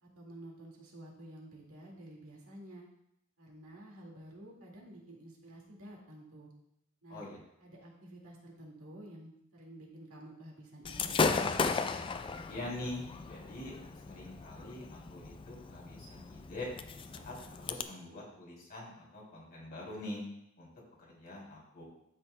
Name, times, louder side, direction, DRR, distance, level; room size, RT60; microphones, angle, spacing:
voice 1, 0.0-2.9 3.4-6.5 7.0-7.3 7.6-11.2, right 1 dB, 75° right, -2 dB, 2.0 m, -51 dB
Gunshot gunfire / Fireworks, 10.8-17.8, left 4 dB, 25° left, 0.3 m, -36 dB
voice 2, 12.5-13.8 14.0-16.7 17.1-20.2 20.6-20.7 21.1-21.8, left 1 dB, 45° left, -4 dB, 2.8 m, -44 dB
12.0 x 6.0 x 2.2 m, 0.79 s
head